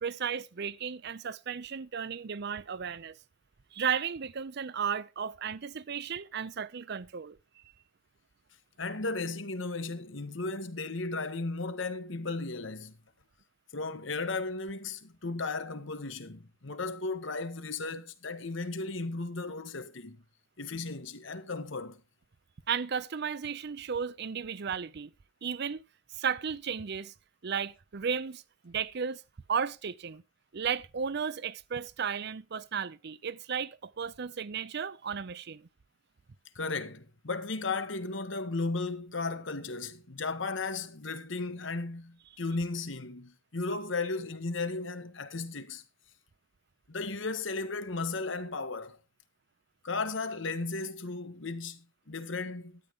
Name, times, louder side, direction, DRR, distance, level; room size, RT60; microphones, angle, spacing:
voice 1, 0.0-3.2 3.7-7.4 22.7-25.1 25.4-25.8 26.1-27.1 27.4-29.2 29.5-30.2 30.5-35.7, right 7 dB, 55° right, 0.6 m, -34 dB
voice 2, 8.8-13.0 13.7-20.2 20.6-22.0 36.5-45.8 46.9-49.0 49.8-52.8, left 3 dB, 70° left, 1.3 m, -35 dB
12.5 x 10.0 x 3.6 m
head